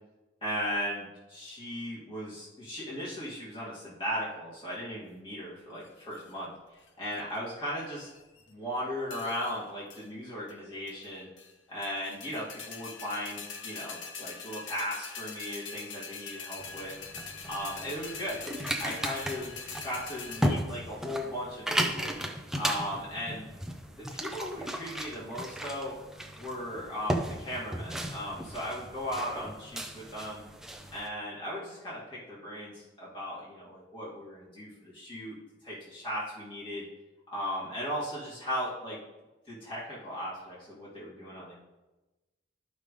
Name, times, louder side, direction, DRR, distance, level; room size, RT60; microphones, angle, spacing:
voice 1, 0.4-6.5 7.0-8.1 8.5-11.3 11.7-16.9 17.5-18.4 18.8-22.2 22.6-23.4 24.0-25.9 26.4-30.4 30.9-35.4 35.6-36.8 37.3-39.0 39.5-41.5, equal, 25° left, -9 dB, 2.5 m, -37 dB
sound 1, 5.8-6.3 6.9-7.4 7.8-8.5 9.1-9.6 9.9-10.1 10.5-10.6 10.9-11.5 11.8-20.5, left 5 dB, 75° left, 0.9 m, -43 dB
sound 2, 16.6-31.1, equal, 5° right, 0.5 m, -35 dB
12.5 x 5.3 x 3.3 m, 1.1 s
head